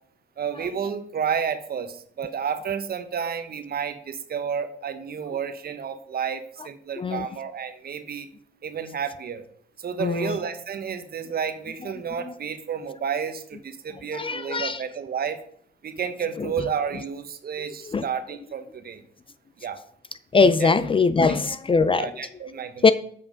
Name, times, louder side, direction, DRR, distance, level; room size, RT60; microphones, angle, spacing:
voice 1, 0.4-8.3 8.6-9.4 9.8-15.4 15.8-19.0 19.6-19.8 20.6-20.7 21.2-21.3 21.9-22.9, right 7 dB, 50° right, 9 dB, 1.0 m, -31 dB
voice 2, 10.0-10.4 14.1-14.8 17.9-18.1 20.3-22.1 22.8-22.9, left 4 dB, 25° left, 14 dB, 0.5 m, -20 dB
7.6 x 5.5 x 5.1 m, 0.63 s
cardioid pair, 90°, 20 cm